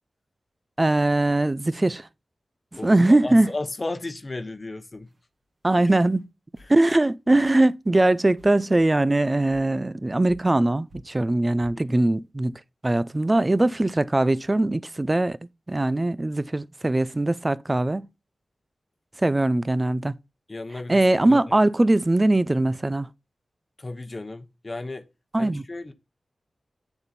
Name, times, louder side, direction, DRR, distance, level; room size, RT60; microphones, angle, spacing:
voice 1, 0.8-2.1 2.8-3.5 5.6-6.2 6.7-15.4 15.7-18.1 19.2-20.1 20.9-23.1 25.3-25.6, right 2 dB, 25° right, 0.5 m, -21 dB
voice 2, 2.8-5.1 5.7-5.9 6.6-6.7 11.8-12.1 20.5-21.6 23.8-25.1 25.4-25.9, left 2 dB, 35° left, 1.0 m, -35 dB
sound 1, 4.9-5.2 5.9-6.2 6.5-6.8 7.4-7.6 8.0-8.1 8.4-8.9 9.5-9.7 10.3-10.7 10.9-11.3 11.6-11.8, left 1 dB, 50° right, 1.9 m, -51 dB
8.8 x 7.1 x 4.0 m
wide cardioid pair, 80°, 0 cm